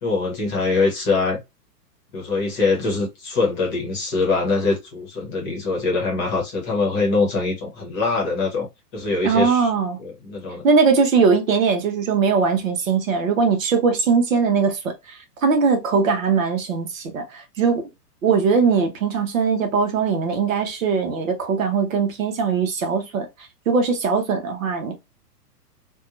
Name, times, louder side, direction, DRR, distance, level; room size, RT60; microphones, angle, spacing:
voice 1, 0.0-1.4 2.1-8.7 8.9-9.7 10.0-10.7, left 3 dB, 20° left, 1.0 m, -23 dB
voice 2, 9.2-10.0 10.6-17.9 18.2-23.3 23.7-24.9, right 5 dB, 55° right, 0.9 m, -20 dB
2.6 x 2.3 x 2.5 m
figure-of-eight pair, 110°, 48 cm